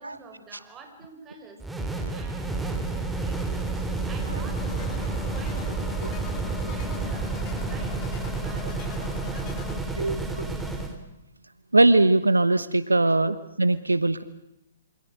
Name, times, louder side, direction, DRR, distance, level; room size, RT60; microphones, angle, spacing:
voice 1, 0.0-3.7 4.1-10.7 12.9-13.1, right 4 dB, 20° right, 5 dB, 5.4 m, -48 dB
sound 1, 1.6-11.0, right 3 dB, 5° right, 3.3 m, -30 dB
sound 2, 4.5-9.8, left 10 dB, 40° left, 1.9 m, -43 dB
voice 2, 10.0-10.5 11.7-14.2, right 2 dB, 85° right, 15 dB, 1.1 m, -21 dB
27.5 x 26.0 x 6.5 m, 0.88 s
figure-of-eight pair, 120°, 0 cm